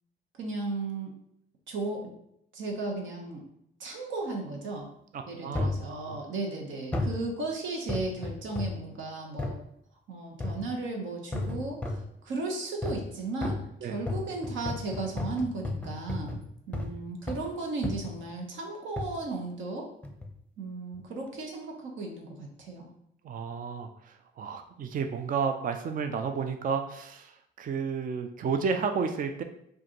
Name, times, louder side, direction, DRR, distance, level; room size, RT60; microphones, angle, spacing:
voice 1, 0.4-1.1 1.7-2.1 2.5-3.4 3.8-4.9 5.3-9.6 10.1-16.3 16.7-19.9 20.6-22.9, right 3 dB, 75° right, 1 dB, 0.9 m, -35 dB
voice 2, 5.1-6.2 13.8-14.0 23.2-29.4, right 5 dB, 45° right, 7 dB, 0.4 m, -32 dB
sound 1, 5.5-5.9 6.9-7.2 7.9-8.8 9.4-9.6 10.4-10.7 11.3-12.1 12.8-13.1 13.4-17.0 17.3-17.5 17.8-18.2 19.0-19.2 20.0-20.3 20.9-21.0, left 2 dB, 5° left, 0.6 m, -33 dB
4.6 x 2.6 x 2.9 m, 0.75 s
cardioid pair, 90°, 20 cm